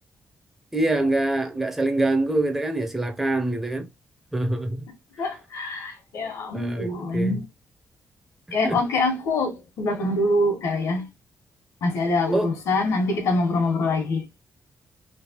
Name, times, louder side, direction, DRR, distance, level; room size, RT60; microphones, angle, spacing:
voice 1, 0.7-3.9 4.3-4.9 6.5-7.3 8.6-8.8 12.3-12.5, right 2 dB, 5° right, 0.4 m, -25 dB
voice 2, 5.2-7.4 8.5-11.1 11.8-14.2, left 2 dB, 85° left, 1.2 m, -24 dB
3.2 x 2.8 x 2.8 m
wide cardioid pair, 140°, 5 cm